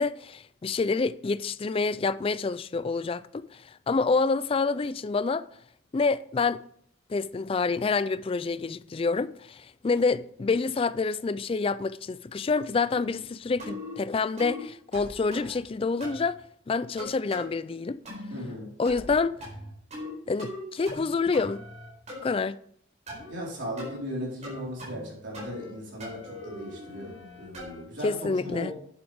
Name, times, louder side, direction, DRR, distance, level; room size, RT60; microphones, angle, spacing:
voice 1, 0.0-5.4 5.9-6.6 7.1-16.4 16.7-18.0 18.8-19.5 20.3-21.6 22.2-22.6 28.0-28.7, left 4 dB, 30° left, 0.3 m, -27 dB
sound 1, 13.6-14.0 14.4-14.6 14.9-15.6 16.0-16.3 17.0-17.5 18.1-18.4 18.9-19.2 19.4-20.1 20.4-21.0 21.3-22.2 23.1-23.3 23.8-24.0 24.4-25.1 25.3-25.7 26.0-27.8, left 1 dB, 35° right, 4.4 m, -40 dB
voice 2, 18.3-18.7 23.3-28.7, equal, 60° right, 4.3 m, -37 dB
11.0 x 8.2 x 3.5 m
head